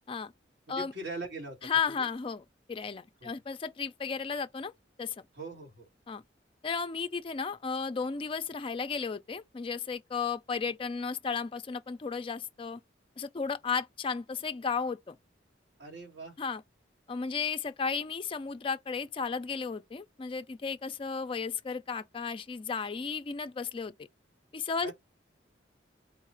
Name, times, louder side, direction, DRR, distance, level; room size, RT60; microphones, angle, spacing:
voice 1, 0.7-1.6 2.0-2.1 3.2-3.3 5.3-5.9 15.8-16.4 24.8-24.9, right 2 dB, 60° right, 1.9 m, -41 dB
voice 2, 1.6-4.7 5.0-5.2 6.1-6.2 6.6-12.8 13.2-15.2 16.4-16.6 17.1-23.9 24.5-24.9, left 5 dB, 30° left, 0.3 m, -34 dB
4.0 x 2.4 x 4.3 m
head